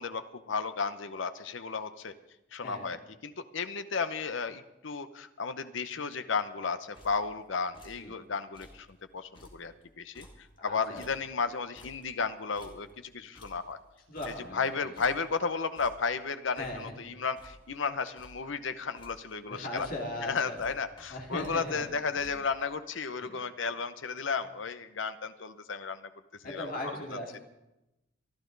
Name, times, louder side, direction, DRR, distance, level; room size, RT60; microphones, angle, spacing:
voice 1, 0.0-2.1 2.5-3.0 3.2-8.9 9.1-10.3 10.6-13.8 14.5-19.9 20.2-26.1 26.4-26.7, left 5 dB, 65° left, 11 dB, 0.8 m, -33 dB
sound 1, 6.9-7.4 7.7-8.1 8.4-8.9 9.2-11.5 11.7-14.7 14.9-15.4 15.7-16.2 16.5-17.9 18.2-18.5 18.8-19.4 19.7-20.3 20.6-22.6, left 1 dB, 25° left, 2.0 m, -55 dB
voice 2, 10.6-11.0 14.1-14.9 16.6-16.9 19.5-20.6 21.1-21.9 22.1-22.3 23.2-23.4 26.4-27.4, left 1 dB, 45° left, 0 dB, 2.5 m, -38 dB
24.0 x 11.5 x 4.0 m, 0.94 s
head